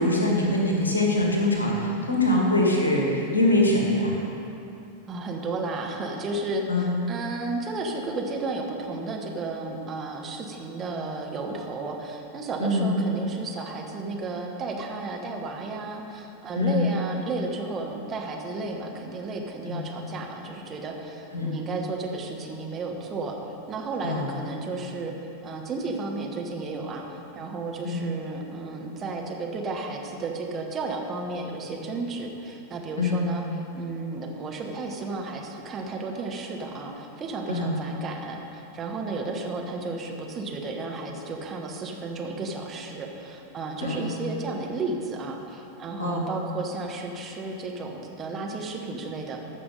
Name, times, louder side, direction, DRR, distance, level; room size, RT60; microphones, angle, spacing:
voice 1, 0.0-4.2 6.7-6.9 12.6-12.9 16.6-16.9 19.6-19.8 21.3-21.5 24.0-24.3 27.8-28.1 33.0-33.3 37.5-37.7 43.8-44.1 46.0-46.3, left 1 dB, 75° left, -1 dB, 1.8 m, -23 dB
voice 2, 5.1-23.3 23.7-25.1 25.4-33.4 33.7-49.4, right 3 dB, 25° right, 1 dB, 1.3 m, -33 dB
14.5 x 5.9 x 5.3 m, 2.8 s
figure-of-eight pair, 90°, 0 cm